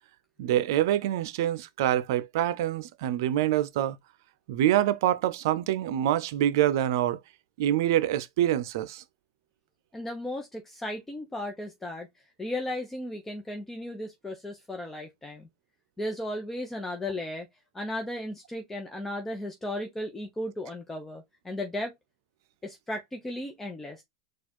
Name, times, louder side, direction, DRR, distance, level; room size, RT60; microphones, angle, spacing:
voice 1, 0.4-4.0 4.5-7.2 7.6-9.0, right 12 dB, 70° right, 0.6 m, -25 dB
voice 2, 9.9-12.1 12.4-15.5 16.0-17.5 17.7-21.9 22.6-24.0, left 1 dB, 10° left, 0.9 m, -35 dB
4.3 x 2.5 x 4.4 m
hypercardioid pair, 115°, 2 cm